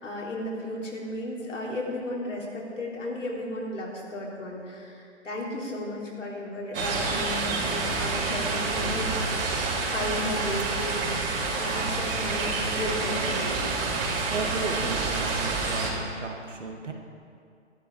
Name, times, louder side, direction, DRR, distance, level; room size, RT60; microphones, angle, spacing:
voice 1, 0.0-9.2 9.4-9.6 9.9-13.6, left 1 dB, 80° left, -4 dB, 3.5 m, -34 dB
sound 1, 6.7-15.9, right 3 dB, 45° right, 3.0 m, -28 dB
voice 2, 14.2-16.9, right 3 dB, 75° right, 3 dB, 1.8 m, -34 dB
12.5 x 12.0 x 4.8 m, 2.4 s
figure-of-eight pair, 130°, 37 cm